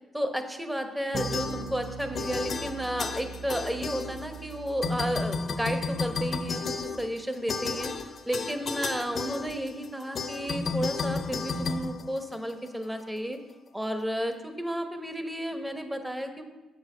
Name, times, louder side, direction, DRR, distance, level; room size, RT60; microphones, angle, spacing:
voice 1, 0.1-7.9 8.2-13.4 13.7-16.4, equal, 5° right, 6 dB, 1.0 m, -32 dB
sound 1, 1.1-4.5 4.8-12.7, left 4 dB, 50° left, 0.7 m, -33 dB
sound 2, 1.1-5.9, right 6 dB, 40° right, 0.4 m, -41 dB
8.1 x 6.4 x 4.9 m, 1.1 s
cardioid pair, 90°, 0 cm